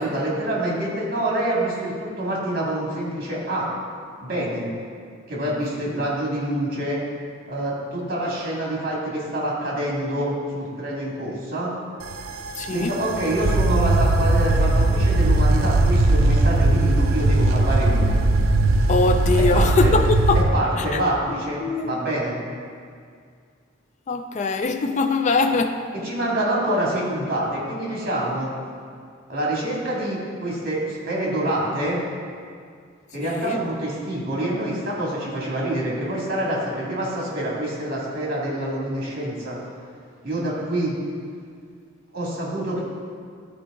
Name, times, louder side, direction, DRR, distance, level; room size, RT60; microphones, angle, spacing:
voice 1, 0.0-3.7 4.2-4.7 5.3-7.0 7.5-11.7 12.7-18.2 19.5-19.9 20.3-22.3 26.0-28.5 29.3-32.0 33.1-39.6 40.2-41.0 42.1-42.8, right 1 dB, 50° right, 2.1 m, -26 dB
sound 1, 12.0-20.5, right 2 dB, 90° right, 0.6 m, -19 dB
voice 2, 12.6-12.9 18.9-20.4 20.8-20.9 21.6-22.0 24.1-25.9 33.2-33.6, left 3 dB, 35° left, 0.4 m, -22 dB
11.5 x 4.7 x 3.7 m
head